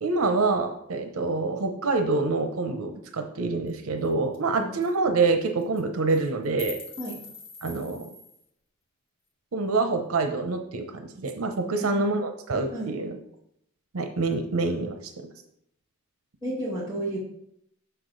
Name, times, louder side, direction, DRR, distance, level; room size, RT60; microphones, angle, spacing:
voice 1, 0.0-6.8 7.6-8.1 9.5-13.2 13.9-15.0, right 3 dB, 80° right, 6 dB, 0.7 m, -26 dB
sound 1, 3.7-3.8 4.0-4.1 4.3-4.5 4.8-4.9 5.6-5.8 6.1-8.4, left 3 dB, 25° left, 1.2 m, -43 dB
voice 2, 11.6-12.0 12.7-12.9 16.4-17.2, right 1 dB, 15° right, -7 dB, 1.5 m, -32 dB
6.8 x 6.3 x 3.9 m, 0.74 s
head